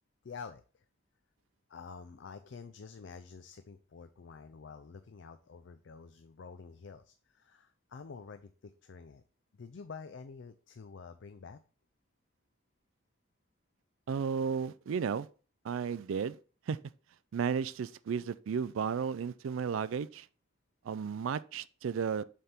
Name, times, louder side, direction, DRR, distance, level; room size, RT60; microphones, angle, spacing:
voice 1, 0.2-0.8 1.7-9.2 9.6-11.6, left 5 dB, 60° left, 0.4 m, -48 dB
voice 2, 14.1-15.3 15.6-16.4 16.7-16.8 17.3-20.3 20.8-22.2, right 6 dB, 75° right, 0.4 m, -33 dB
7.4 x 3.5 x 4.3 m
head